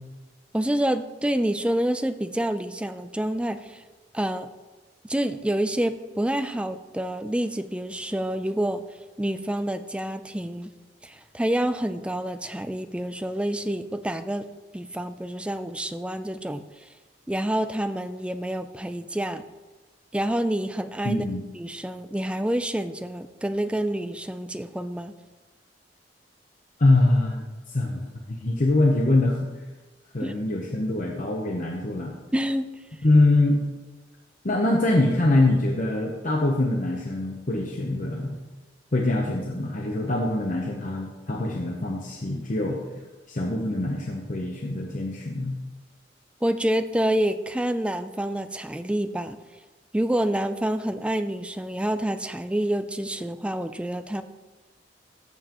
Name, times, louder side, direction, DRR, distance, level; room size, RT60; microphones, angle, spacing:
voice 1, 0.5-3.8 4.1-4.5 5.0-8.8 9.2-10.7 11.0-14.5 14.7-16.9 17.3-19.4 20.1-21.2 21.6-25.1 30.2-30.3 32.3-32.7 46.4-49.4 49.9-54.2, right 1 dB, 5° right, 10 dB, 0.4 m, -27 dB
voice 2, 21.0-21.4 26.8-28.0 28.3-29.5 30.1-32.1 33.0-33.6 34.4-38.4 38.9-42.8 43.3-45.5, left 2 dB, 45° left, 0 dB, 0.9 m, -23 dB
14.5 x 7.3 x 3.0 m, 1.2 s
head